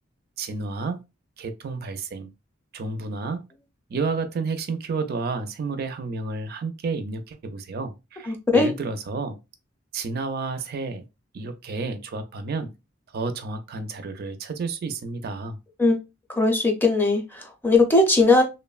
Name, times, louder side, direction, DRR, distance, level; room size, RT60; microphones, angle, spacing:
voice 1, 0.4-1.0 1.4-2.3 2.7-3.4 3.9-9.4 9.9-11.1 11.3-12.7 13.1-15.6, right 4 dB, 50° right, 0.4 m, -31 dB
voice 2, 8.2-8.7 15.8-16.0 16.3-18.4, left 2 dB, 10° left, 0.5 m, -19 dB
2.9 x 2.1 x 2.3 m
head